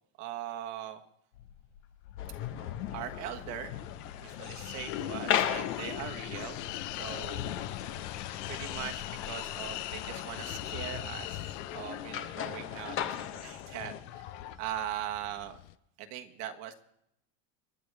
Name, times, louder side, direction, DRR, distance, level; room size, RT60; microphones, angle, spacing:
voice 1, 0.2-1.0 2.9-3.7 4.2-6.6 6.9-7.6 8.5-11.4 11.7-14.3 14.6-15.6 16.0-16.7, right 11 dB, 50° right, 6 dB, 1.4 m, -40 dB
sound 1, 1.3-14.6, left 12 dB, 70° left, 1.0 m, -41 dB
sound 2, 2.2-14.0, left 10 dB, 35° left, 1.0 m, -38 dB
sound 3, 4.4-15.7, left 17 dB, 85° left, 0.7 m, -45 dB
27.5 x 11.0 x 3.5 m, 0.81 s
cardioid pair, 165°, 35 cm